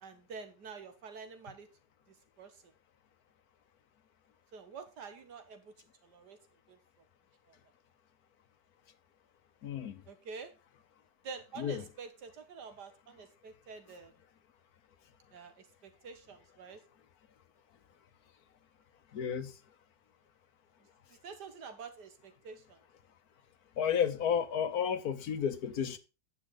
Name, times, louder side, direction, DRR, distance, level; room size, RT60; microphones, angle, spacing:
voice 1, 0.0-1.7 2.4-2.7 4.5-5.7 6.0-6.4 6.7-6.8 7.5-7.6 10.1-10.5 11.2-14.1 15.3-16.8 21.2-22.8, right 5 dB, 85° right, 2.0 m, -47 dB
voice 2, 9.6-10.0 11.6-11.8 19.1-19.5 23.8-26.0, left 8 dB, 70° left, 1.4 m, -32 dB
9.9 x 7.1 x 3.8 m
omnidirectional pair, 1.7 m